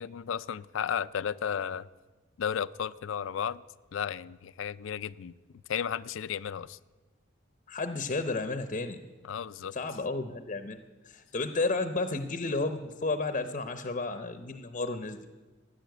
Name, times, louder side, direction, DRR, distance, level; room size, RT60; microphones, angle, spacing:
voice 1, 0.0-1.9 2.4-3.6 3.9-5.3 5.7-6.8 9.2-9.7, left 8 dB, 70° left, 16 dB, 0.4 m, -33 dB
voice 2, 7.7-9.0 9.7-10.8 11.0-15.3, left 3 dB, 40° left, 10 dB, 0.7 m, -32 dB
15.0 x 9.9 x 7.9 m, 1.3 s
head